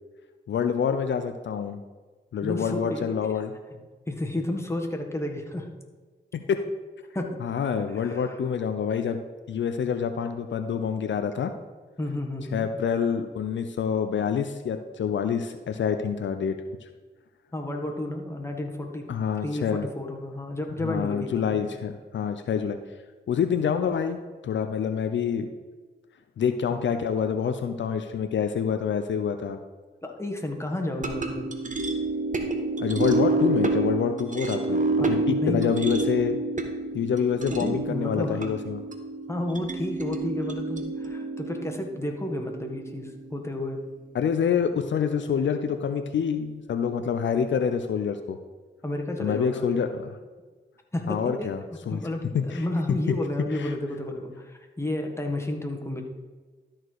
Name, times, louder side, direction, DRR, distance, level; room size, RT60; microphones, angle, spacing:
voice 1, 0.5-1.8 2.3-3.5 6.3-6.6 7.4-9.2 9.5-11.5 12.5-16.6 16.8-16.9 19.1-19.8 20.8-22.8 23.3-24.2 24.4-25.5 26.4-29.6 32.8-34.8 35.1-36.4 36.9-38.8 44.1-48.4 49.2-50.1 51.1-51.6 51.9-52.0 52.3-52.6 53.1-53.2 53.5-53.7, left 7 dB, 70° left, 8 dB, 0.6 m, -27 dB
voice 2, 2.4-3.1 4.1-5.7 7.1-7.4 7.9-8.4 12.0-12.7 17.5-19.0 19.4-21.6 30.0-31.5 35.0-35.6 37.5-38.5 39.3-43.8 48.8-49.9 50.9-56.0, left 1 dB, 15° left, 2 dB, 1.7 m, -31 dB
sound 1, 31.0-43.4, right 2 dB, 40° right, 1.2 m, -28 dB
12.5 x 4.5 x 4.7 m, 1.4 s
cardioid pair, 50°, 20 cm